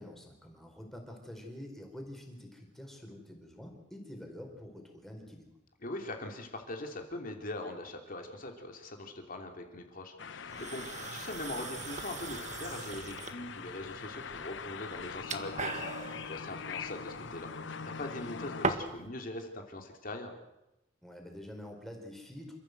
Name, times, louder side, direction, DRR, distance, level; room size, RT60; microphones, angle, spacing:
voice 1, 0.0-5.5 21.0-22.6, left 1 dB, ahead, 2 dB, 4.7 m, -47 dB
voice 2, 5.8-17.7 18.0-20.3, left 2 dB, 45° left, 3 dB, 3.1 m, -42 dB
sound 1, 10.2-18.7, left 6 dB, 70° left, 0.8 m, -43 dB
sound 2, 10.5-19.1, right 4 dB, 40° right, 1.7 m, -41 dB
28.0 x 14.5 x 8.0 m, 0.92 s
head